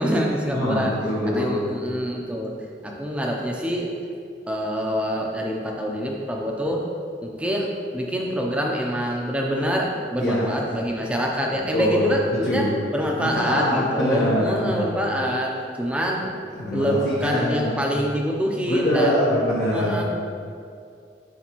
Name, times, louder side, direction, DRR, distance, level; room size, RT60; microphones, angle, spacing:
voice 1, 0.0-0.9 1.3-2.5 2.8-3.9 4.5-6.9 7.2-16.3 16.7-19.2 19.7-20.0, equal, 5° right, -1 dB, 0.5 m, -25 dB
voice 2, 0.5-1.6 10.2-10.5 11.7-12.1 12.5-12.7 13.2-14.9 16.6-17.8 18.7-20.0, left 1 dB, 60° left, -7 dB, 0.9 m, -23 dB
9.9 x 3.3 x 3.0 m, 2.4 s
head